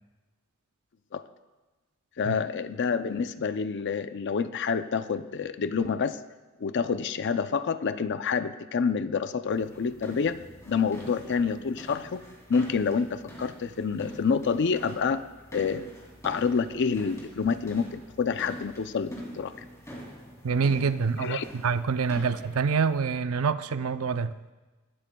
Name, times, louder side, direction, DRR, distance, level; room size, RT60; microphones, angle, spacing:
voice 1, 2.2-6.2 6.6-10.4 10.7-12.2 12.5-15.2 15.5-15.9 16.2-19.5 21.2-21.4, left 5 dB, 55° left, 11 dB, 0.5 m, -28 dB
sound 1, 9.5-23.0, equal, 15° left, 2.7 m, -45 dB
voice 2, 20.4-24.3, right 5 dB, 85° right, 12 dB, 0.6 m, -26 dB
22.5 x 12.5 x 2.3 m, 1.2 s
head